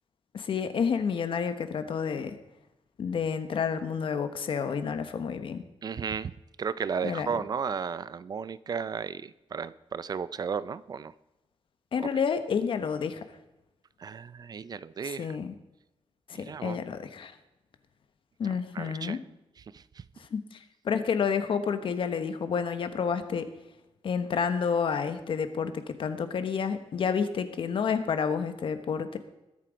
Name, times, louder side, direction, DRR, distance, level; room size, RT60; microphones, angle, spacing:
voice 1, 0.3-2.4 3.0-5.6 7.0-7.3 11.9-13.2 15.0-15.5 16.3-17.3 18.4-19.2 20.2-20.6 20.8-23.5 24.0-29.2, left 6 dB, 60° left, 9 dB, 1.1 m, -29 dB
voice 2, 5.8-11.1 12.0-12.1 14.0-15.3 16.3-16.8 18.4-19.2 19.7-20.0, right 6 dB, 40° right, 16 dB, 0.4 m, -34 dB
21.5 x 7.6 x 5.1 m, 0.96 s
wide cardioid pair, 160°, 10 cm